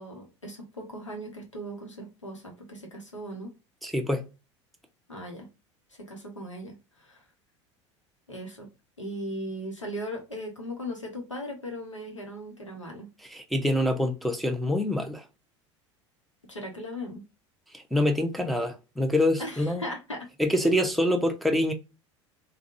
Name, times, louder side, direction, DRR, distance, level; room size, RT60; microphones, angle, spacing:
voice 1, 0.0-3.5 5.1-5.5 6.0-7.2 8.3-8.7 9.0-13.1 16.5-17.2 19.4-20.3 20.6-20.8, equal, 90° left, 0.8 m, -38 dB
voice 2, 3.8-4.2 13.3-15.2 17.7-19.8 20.4-21.7, left 1 dB, ahead, 0.6 m, -25 dB
3.5 x 2.2 x 2.5 m
figure-of-eight pair, 75°, 15 cm